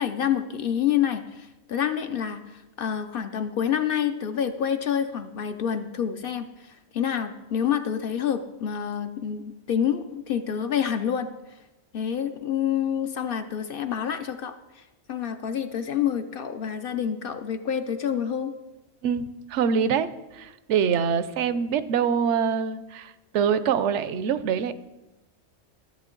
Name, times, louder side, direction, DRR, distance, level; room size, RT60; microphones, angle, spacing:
voice 1, 0.0-11.3 11.9-18.5, left 8 dB, 60° left, 8 dB, 0.6 m, -28 dB
voice 2, 19.0-24.7, right 7 dB, 70° right, 13 dB, 0.9 m, -25 dB
13.0 x 7.7 x 3.8 m, 1.1 s
omnidirectional pair, 1.3 m